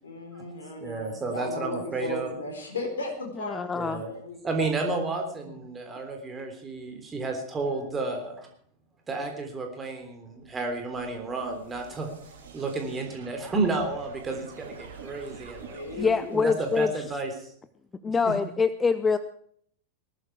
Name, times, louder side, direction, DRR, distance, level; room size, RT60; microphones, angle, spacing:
voice 1, 0.0-4.5 15.7-16.3, left 2 dB, 65° left, 2 dB, 4.2 m, -36 dB
voice 2, 0.8-2.3 3.7-4.1 4.4-8.5 9.1-12.1 12.5-15.8 16.3-17.5 18.0-18.3, right 3 dB, 20° right, 3 dB, 3.5 m, -31 dB
voice 3, 3.5-4.0 16.0-16.9 18.0-19.2, left 5 dB, 15° left, 13 dB, 0.7 m, -24 dB
sound 1, 10.2-17.3, right 5 dB, 65° right, 6.9 m, -48 dB
19.0 x 14.0 x 4.7 m, 0.63 s
figure-of-eight pair, 90°, 0 cm